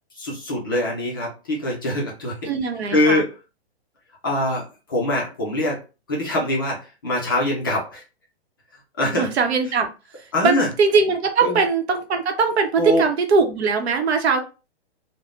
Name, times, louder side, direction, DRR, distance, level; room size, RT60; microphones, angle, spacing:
voice 1, 0.1-2.5 2.9-3.3 4.2-5.8 6.1-8.0 9.0-9.3 10.3-10.7 11.4-11.6 12.8-13.0, left 1 dB, 20° left, -3 dB, 0.4 m, -23 dB
voice 2, 2.5-3.2 9.2-9.9 10.1-14.4, right 4 dB, 75° right, 6 dB, 0.8 m, -21 dB
3.4 x 2.1 x 2.3 m, 0.31 s
hypercardioid pair, 170°, 33 cm